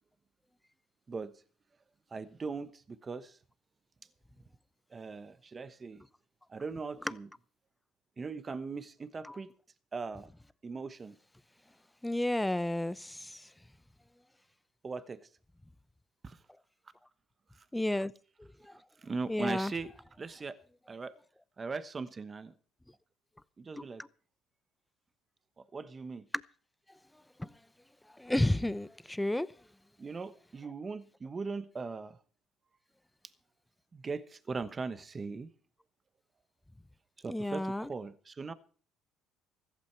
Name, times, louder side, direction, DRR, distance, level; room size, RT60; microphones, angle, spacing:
voice 1, 2.1-3.4 4.9-6.0 6.5-7.3 8.2-9.5 9.9-10.3 10.6-11.2 14.8-15.3 16.2-16.4 17.5-17.6 18.7-19.9 20.2-20.6 20.9-21.1 21.6-22.5 23.6-24.0 25.7-26.2 30.0-32.2 33.9-35.5 37.2-38.5, right 4 dB, 25° right, 1.1 m, -39 dB
voice 2, 12.0-13.5 17.7-18.1 18.4-18.8 19.3-19.7 26.3-26.4 27.4-27.5 28.2-29.5 37.3-37.9, left 1 dB, 5° left, 0.7 m, -32 dB
15.0 x 14.0 x 4.6 m
cardioid pair, 105°, 0 cm